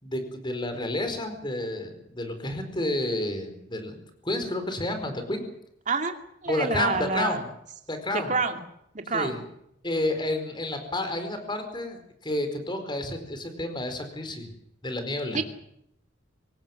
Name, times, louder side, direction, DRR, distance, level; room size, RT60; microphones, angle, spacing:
voice 1, 0.0-5.4 6.5-7.5 7.9-8.3 9.1-9.4 9.8-14.5 14.8-15.4, left 1 dB, 25° left, 7 dB, 4.5 m, -30 dB
voice 2, 6.4-7.4 8.1-8.6 8.9-9.4 15.3-15.4, right 4 dB, 40° right, 5 dB, 2.5 m, -27 dB
24.0 x 18.5 x 7.8 m, 0.76 s
head